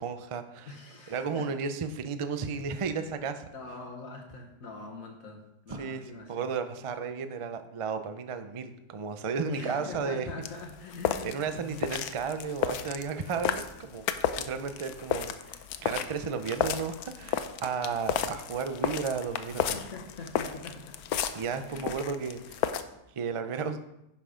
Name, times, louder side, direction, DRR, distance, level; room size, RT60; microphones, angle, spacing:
voice 1, 0.0-0.7 1.1-3.5 5.7-10.3 11.2-14.0 14.4-19.8 21.3-22.7 23.1-23.8, right 5 dB, 55° right, 9 dB, 0.3 m, -33 dB
voice 2, 0.7-1.5 3.5-6.5 9.5-11.9 17.2-17.3 19.7-21.0 21.6-21.9 22.3-23.0, left 3 dB, 65° left, 1 dB, 1.6 m, -44 dB
sound 1, 10.4-22.8, left 9 dB, 90° left, 1.1 m, -33 dB
10.5 x 5.8 x 5.0 m, 0.85 s
omnidirectional pair, 1.6 m